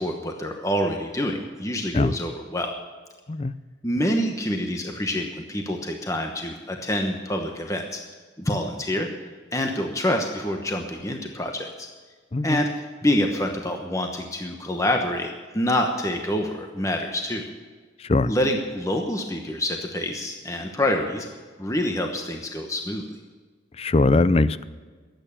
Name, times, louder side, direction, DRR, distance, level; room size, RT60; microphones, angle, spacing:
voice 1, 0.0-2.7 3.8-8.0 8.4-9.1 9.5-11.9 12.4-12.7 13.0-17.5 18.2-21.3 21.6-23.1, left 1 dB, 15° left, 3 dB, 1.0 m, -26 dB
voice 2, 23.8-24.7, left 2 dB, 30° left, 16 dB, 0.5 m, -20 dB
21.5 x 9.1 x 7.1 m, 1.4 s
head